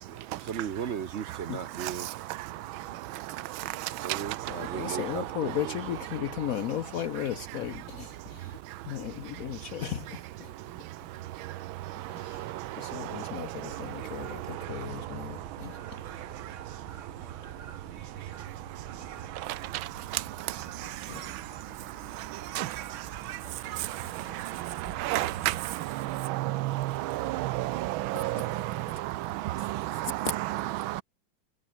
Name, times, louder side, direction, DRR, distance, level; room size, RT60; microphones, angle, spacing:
voice 1, 0.0-2.1 4.0-6.3 8.4-8.5, right 8 dB, 60° right, 0.7 m, -37 dB
voice 2, 1.8-5.2 8.3-9.1 9.3-9.7 10.4-31.0, right 16 dB, 90° right, 1.5 m, -35 dB
voice 3, 3.1-4.1 4.5-8.6 8.9-10.5 12.0-16.2 17.4-17.5 20.8-21.4 21.6-22.1 26.6-26.7 28.1-28.4 29.6-30.4, left 10 dB, 70° left, 0.8 m, -37 dB
sound 1, 13.7-25.7, right 7 dB, 45° right, 1.5 m, -47 dB
omnidirectional pair, 2.1 m